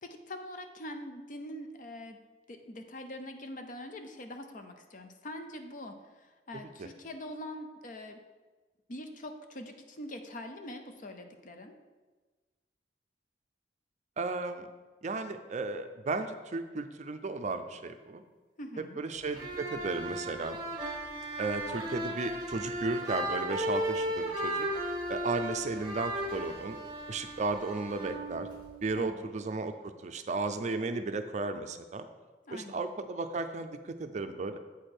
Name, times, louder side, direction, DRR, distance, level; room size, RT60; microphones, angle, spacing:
voice 1, 0.0-2.2 2.5-8.2 8.9-11.8 18.6-19.0 29.0-29.3 32.5-32.8, left 1 dB, 50° left, 6 dB, 0.7 m, -43 dB
voice 2, 14.2-14.7 15.0-18.2 19.0-20.6 21.4-24.7 25.1-26.8 27.1-28.5 28.8-29.7 30.0-32.1 32.5-34.6, right 3 dB, 40° right, 8 dB, 0.4 m, -34 dB
sound 1, 19.3-29.0, right 1 dB, 25° right, 1.5 m, -35 dB
8.2 x 4.9 x 4.4 m, 1.3 s
head